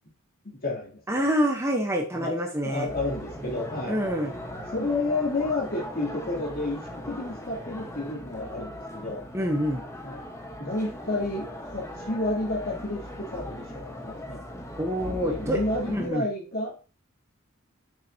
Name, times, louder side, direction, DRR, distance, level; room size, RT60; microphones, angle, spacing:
voice 1, 0.4-1.0 2.1-2.3 2.6-4.0 4.7-9.2 10.0-10.2 10.6-14.4 15.2-16.8, left 2 dB, 45° left, -3 dB, 3.3 m, -31 dB
voice 2, 1.1-2.9 3.9-4.3 9.3-9.8 14.8-15.6 15.9-16.3, equal, 15° right, 2 dB, 1.2 m, -26 dB
sound 1, 2.9-16.1, left 1 dB, 15° left, 1.4 m, -39 dB
9.8 x 7.2 x 2.9 m, 0.34 s
head